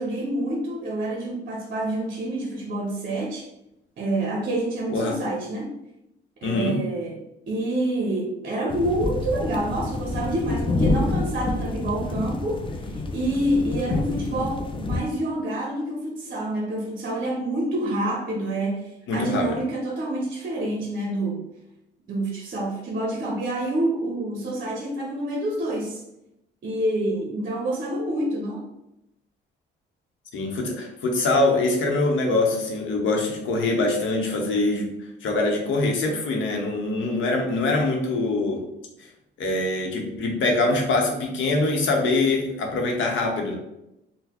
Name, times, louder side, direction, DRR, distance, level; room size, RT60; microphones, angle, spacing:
voice 1, 0.0-3.5 4.0-5.8 6.4-21.5 22.1-26.0 26.6-28.7, right 1 dB, 50° right, 0 dB, 0.7 m, -27 dB
voice 2, 6.4-6.8 19.1-19.6 30.3-34.9 35.2-38.6 39.4-43.5, left 2 dB, 75° left, 1 dB, 0.8 m, -23 dB
sound 1, 8.7-15.0, left 2 dB, 25° left, 0.4 m, -28 dB
3.8 x 2.1 x 2.9 m, 0.86 s
cardioid pair, 90°, 20 cm